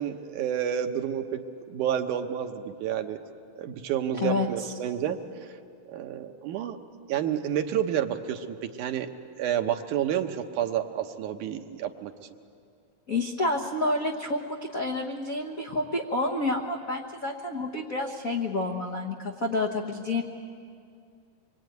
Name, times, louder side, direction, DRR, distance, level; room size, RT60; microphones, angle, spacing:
voice 1, 0.0-1.4 1.7-3.2 3.6-5.2 5.9-6.8 7.1-9.1 9.4-12.1, right 10 dB, 75° right, 6 dB, 2.4 m, -29 dB
voice 2, 4.2-4.7 13.1-20.2, left 2 dB, 70° left, 0 dB, 0.7 m, -29 dB
25.0 x 23.0 x 9.3 m, 2.4 s
omnidirectional pair, 3.8 m